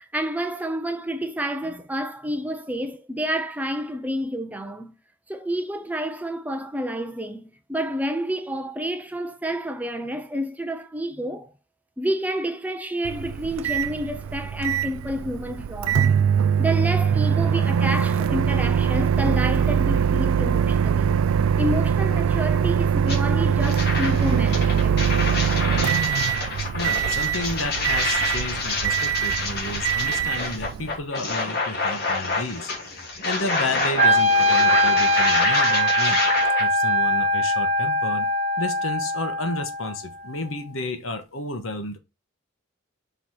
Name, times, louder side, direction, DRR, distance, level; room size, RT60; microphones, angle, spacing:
voice 1, 0.0-4.9 5.3-11.5 12.0-16.0 16.6-21.2 21.6-25.1, equal, 5° right, 0.6 m, -29 dB
Microwave oven, 13.0-31.0, right 7 dB, 80° right, 0.4 m, -22 dB
sound 1, 23.1-23.2 23.6-36.6, left 3 dB, 50° left, 2.3 m, -27 dB
voice 2, 26.7-36.2 36.6-38.3 38.6-42.0, left 2 dB, 75° left, 1.4 m, -32 dB
Wind instrument woodwind instrument, 34.0-40.0, equal, 30° right, 0.9 m, -21 dB
5.8 x 4.8 x 4.2 m
head